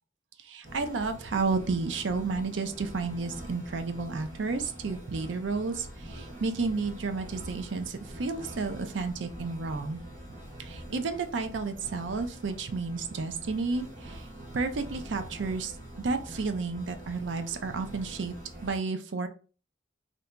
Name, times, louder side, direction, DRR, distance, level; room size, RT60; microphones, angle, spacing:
voice 1, 0.4-10.0 10.6-14.2 14.5-18.4 18.6-19.3, right 4 dB, 80° right, 8 dB, 0.5 m, -32 dB
sound 1, 0.6-18.7, right 1 dB, 45° right, 1.1 m, -45 dB
2.8 x 2.6 x 3.3 m, 0.35 s
head